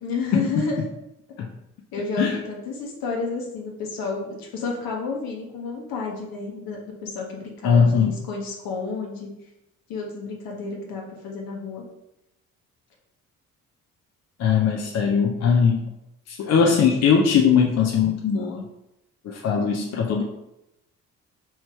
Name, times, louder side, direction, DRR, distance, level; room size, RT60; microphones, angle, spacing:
voice 1, 0.0-0.8 1.9-9.3 9.9-11.8 19.6-19.7, left 4 dB, 60° left, -1 dB, 1.1 m, -31 dB
voice 2, 7.6-8.1 14.4-15.8 16.3-18.6 19.2-20.2, left 6 dB, 40° left, 1 dB, 0.6 m, -20 dB
3.0 x 2.8 x 4.5 m, 0.87 s
hypercardioid pair, 45°, 40 cm